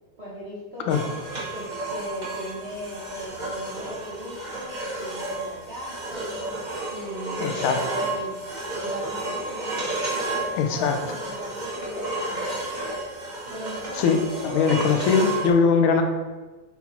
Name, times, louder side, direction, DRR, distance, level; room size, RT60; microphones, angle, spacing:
voice 1, 0.2-1.1 1.5-6.5 6.9-8.4 8.7-12.6 13.5-14.9, equal, 85° right, -8 dB, 0.5 m, -38 dB
sound 1, 0.9-15.5, right 2 dB, 35° right, 0.6 m, -32 dB
voice 2, 7.4-7.8 10.6-11.0 14.0-16.0, left 5 dB, 80° left, 5 dB, 2.0 m, -21 dB
5.8 x 4.0 x 4.2 m, 1.2 s
omnidirectional pair, 3.3 m